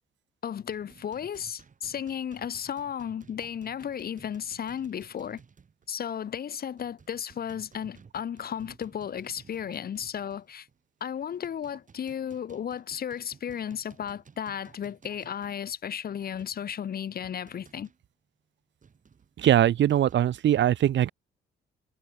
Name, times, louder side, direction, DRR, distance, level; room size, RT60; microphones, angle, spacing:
voice 1, 0.4-5.4 5.9-10.7 11.0-17.9, left 8 dB, 50° left, 1.1 m, -34 dB
sound 1, 0.7-5.9 6.2-6.3 6.8-10.8 11.2-18.1 18.8-20.2, right 6 dB, 40° right, 6.4 m, -56 dB
voice 2, 19.4-21.1, right 11 dB, 65° right, 1.4 m, -21 dB
cardioid pair, 90°, 20 cm